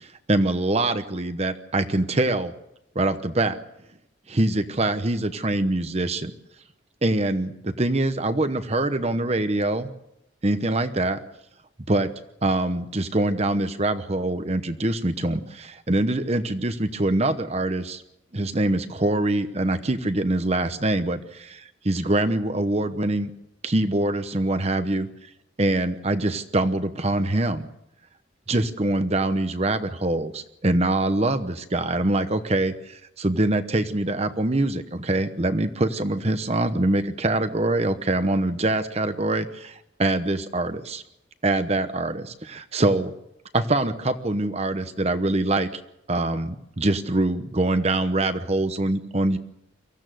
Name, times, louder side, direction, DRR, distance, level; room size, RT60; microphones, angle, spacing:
voice 1, 0.0-2.5 2.9-3.6 4.3-6.3 7.0-9.9 10.4-11.2 11.9-12.1 12.4-18.0 18.3-23.3 23.6-25.1 25.6-27.7 28.5-41.0 41.4-43.1 43.5-45.8 46.1-49.4, right 2 dB, 35° right, 9 dB, 1.0 m, -24 dB
23.5 x 15.0 x 7.8 m, 0.83 s
head